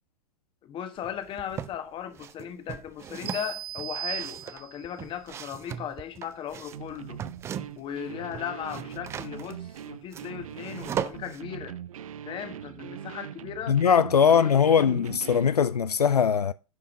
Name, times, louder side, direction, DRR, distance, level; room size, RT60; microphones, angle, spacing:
voice 1, 0.6-7.2 7.8-11.8 12.2-13.8 14.3-15.0, left 9 dB, 25° left, 1.2 m, -37 dB
sound 1, 1.0-1.8 2.2-7.9 8.2-11.4, right 9 dB, 15° right, 0.3 m, -38 dB
sound 2, 3.3-5.0, right 12 dB, 30° right, 1.2 m, -36 dB
sound 3, 6.7-15.6, right 9 dB, 60° right, 0.6 m, -41 dB
voice 2, 13.7-16.5, left 7 dB, 80° left, 0.4 m, -21 dB
9.4 x 5.6 x 4.9 m
figure-of-eight pair, 100°, 20 cm